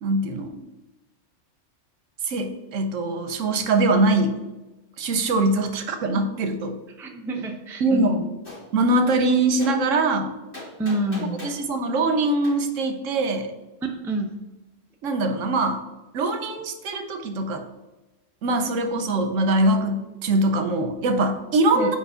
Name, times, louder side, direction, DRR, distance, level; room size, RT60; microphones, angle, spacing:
voice 1, 0.0-0.6 2.3-4.4 5.0-6.8 7.8-8.2 8.7-10.3 11.4-13.5 15.0-15.8 16.1-17.6 18.4-22.0, right 2 dB, 75° right, 7 dB, 1.1 m, -22 dB
voice 2, 7.0-8.2 10.8-11.4 13.8-14.3 21.7-22.0, right 1 dB, 5° right, 2 dB, 0.4 m, -28 dB
Gunshot gunfire, 8.4-8.6 9.6-9.8 10.5-11.6 12.4-12.6, left 1 dB, 45° left, 2.8 m, -39 dB
4.8 x 4.7 x 5.5 m, 1.1 s
omnidirectional pair, 1.3 m